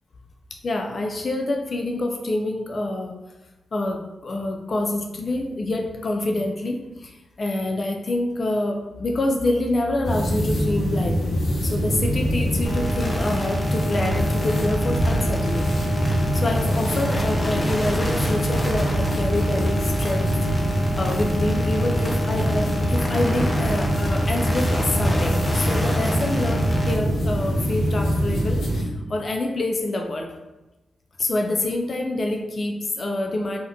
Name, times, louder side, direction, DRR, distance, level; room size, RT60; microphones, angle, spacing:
voice 1, 0.5-3.2 3.7-11.4 11.6-20.3 20.9-30.3 31.2-33.6, left 2 dB, 55° left, 3 dB, 0.3 m, -27 dB
sound 1, 10.0-28.8, equal, 85° left, 0.7 m, -23 dB
sound 2, 12.6-26.9, equal, 20° left, 0.7 m, -30 dB
sound 3, 21.7-27.3, right 1 dB, 60° right, 0.6 m, -39 dB
2.7 x 2.2 x 3.4 m, 1.1 s
supercardioid pair, 45°, 0 cm